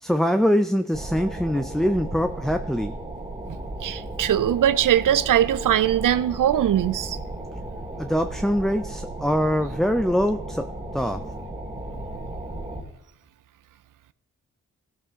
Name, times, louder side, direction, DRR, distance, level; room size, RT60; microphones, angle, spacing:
voice 1, 0.0-2.9 8.0-10.7 10.9-11.2, equal, ahead, 0.5 m, -23 dB
sound 1, 0.9-12.8, right 2 dB, 15° right, 2.1 m, -35 dB
voice 2, 3.8-7.2, right 11 dB, 70° right, 0.5 m, -21 dB
15.0 x 6.8 x 3.7 m
supercardioid pair, 40°, 33 cm